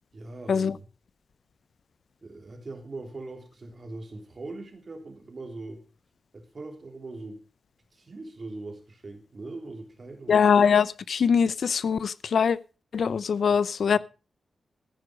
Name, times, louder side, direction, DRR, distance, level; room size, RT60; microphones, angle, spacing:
voice 1, 0.1-0.9 2.2-5.8 6.3-7.4 7.9-10.4, right 2 dB, 35° right, 3.3 m, -41 dB
voice 2, 10.3-12.6 12.9-14.0, left 6 dB, 65° left, 0.6 m, -22 dB
14.5 x 9.8 x 5.1 m
wide cardioid pair, 140°, 0 cm